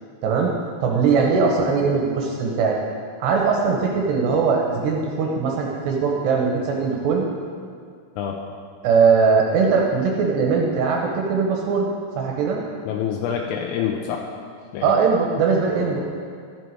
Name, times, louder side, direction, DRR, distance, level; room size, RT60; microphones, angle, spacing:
voice 1, 0.2-0.5 0.8-2.8 3.2-7.3 8.8-11.9 12.2-12.6 14.8-16.0, right 5 dB, 75° right, 0 dB, 2.6 m, -20 dB
voice 2, 12.9-14.3 14.7-14.9, left 8 dB, 85° left, 1 dB, 3.2 m, -26 dB
14.0 x 7.6 x 4.7 m, 2.2 s
omnidirectional pair, 5.9 m